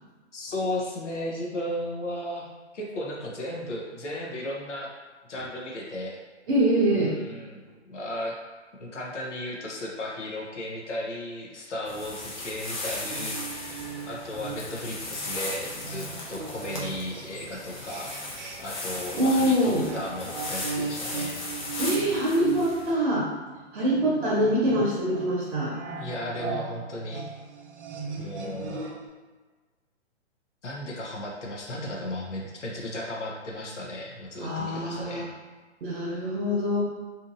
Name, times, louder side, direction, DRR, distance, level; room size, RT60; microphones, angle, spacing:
voice 1, 0.3-2.5 2.7-4.9 5.3-6.2 6.9-7.6 7.9-8.3 8.8-18.2 18.6-21.4 25.9-27.2 28.2-28.9 30.6-35.3, left 1 dB, 85° left, -2 dB, 0.7 m, -35 dB
voice 2, 6.5-7.2 19.1-19.9 21.8-23.3 23.7-25.7 28.0-28.6 34.4-35.3 35.8-36.8, equal, 60° right, -5 dB, 0.8 m, -25 dB
sound 1, 11.9-22.9, left 2 dB, 40° left, 0.7 m, -37 dB
sound 2, 13.1-18.8 19.1-29.1, right 6 dB, 85° right, 0.5 m, -38 dB
2.7 x 2.6 x 2.4 m, 1.3 s
hypercardioid pair, 130°, 35 cm